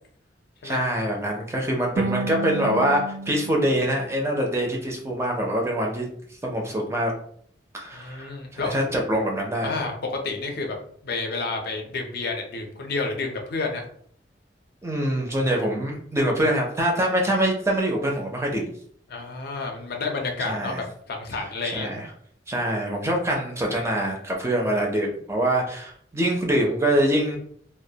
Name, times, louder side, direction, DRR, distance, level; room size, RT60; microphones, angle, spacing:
voice 1, 0.6-6.1 6.4-7.1 7.7-9.8 14.8-18.6 20.4-20.8 21.4-22.1 22.5-27.4, right 1 dB, 15° right, 0 dB, 0.4 m, -24 dB
sound 1, 2.0-5.1, right 3 dB, 80° right, 0.4 m, -33 dB
voice 2, 7.9-8.7 9.6-10.8 11.0-13.8 19.1-21.9, left 3 dB, 60° left, 3 dB, 0.5 m, -30 dB
2.2 x 2.1 x 2.7 m, 0.62 s
head